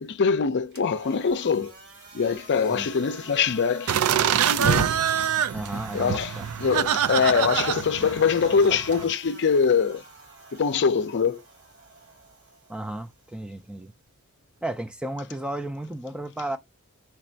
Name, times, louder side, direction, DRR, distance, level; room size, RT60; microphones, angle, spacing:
voice 1, 0.0-1.7 2.1-4.0 4.6-4.9 5.9-10.0 10.5-11.4, left 6 dB, 55° left, 0.5 m, -23 dB
sound 1, 0.7-14.7, right 2 dB, 55° right, 1.4 m, -47 dB
sound 2, 3.9-9.0, right 8 dB, 80° right, 0.4 m, -25 dB
voice 2, 5.5-6.5 12.7-13.9 14.6-16.6, right 1 dB, 5° right, 0.3 m, -33 dB
4.6 x 2.5 x 4.4 m
head